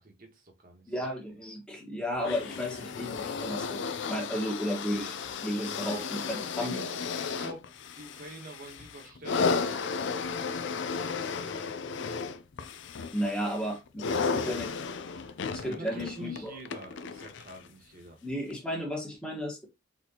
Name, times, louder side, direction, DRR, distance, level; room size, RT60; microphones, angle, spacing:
voice 1, 0.0-0.9 5.5-6.9 7.1-11.8 15.7-18.2, right 1 dB, 45° right, 1.3 m, -47 dB
voice 2, 0.9-6.2 6.6-6.7 13.1-14.7 15.5-16.6 18.2-19.7, equal, 5° left, 1.4 m, -33 dB
sound 1, 2.2-17.7 18.5-18.6, left 5 dB, 60° left, 0.4 m, -34 dB
4.2 x 4.1 x 2.8 m
head